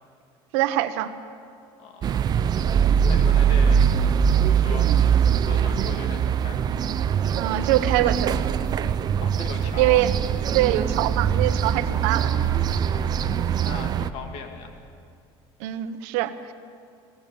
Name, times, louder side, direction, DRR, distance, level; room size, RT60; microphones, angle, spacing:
voice 1, 0.5-1.1 7.3-8.4 9.8-10.1 10.5-12.3 15.6-16.3, right 14 dB, 90° right, 11 dB, 1.1 m, -23 dB
voice 2, 1.8-2.3 3.1-3.8 4.4-4.9 5.4-6.9 8.9-10.1 12.7-14.8, left 5 dB, 70° left, 4 dB, 2.6 m, -39 dB
sound 1, 2.0-14.1, right 8 dB, 40° right, 0.7 m, -22 dB
22.5 x 16.5 x 7.1 m, 2.3 s
cardioid pair, 130°, 11 cm